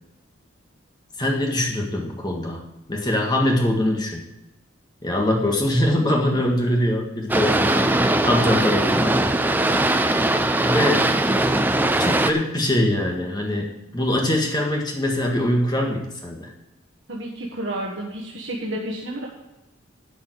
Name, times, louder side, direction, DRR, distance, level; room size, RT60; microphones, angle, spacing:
voice 1, 1.2-2.6 2.9-4.3 5.0-7.9 8.2-9.3 10.6-11.1 12.0-16.5, left 1 dB, 20° left, 1 dB, 1.7 m, -23 dB
Boat Water vehicle, 7.3-12.3, right 1 dB, 10° right, 0.5 m, -20 dB
voice 2, 17.1-19.3, right 1 dB, 60° right, -2 dB, 1.5 m, -31 dB
11.0 x 5.5 x 7.9 m, 0.95 s
head